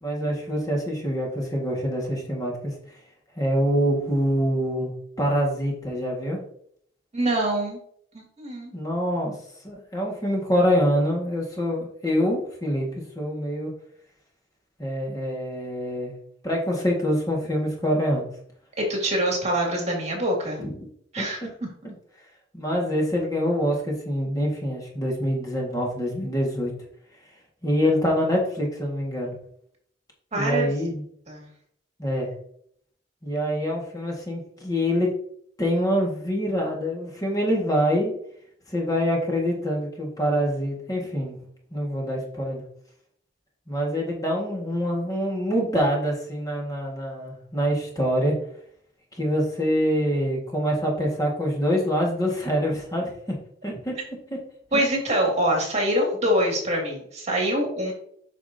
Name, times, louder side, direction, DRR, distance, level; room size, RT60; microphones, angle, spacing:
voice 1, 0.0-2.7 3.4-6.4 8.7-9.3 9.6-13.7 14.8-16.2 16.4-18.3 20.6-20.7 21.2-21.3 22.5-26.7 27.6-29.4 30.3-31.0 32.0-32.3 33.2-35.1 35.6-38.1 38.7-41.4 41.7-42.6 43.7-48.4 49.2-53.1 53.6-53.9, equal, 20° left, -2 dB, 1.8 m, -25 dB
voice 2, 7.1-7.8 8.1-8.7 18.8-20.6 21.1-21.4 30.3-30.7 31.3-31.5 54.7-57.9, right 1 dB, 35° right, 0 dB, 2.3 m, -24 dB
8.4 x 6.1 x 2.8 m, 0.66 s
head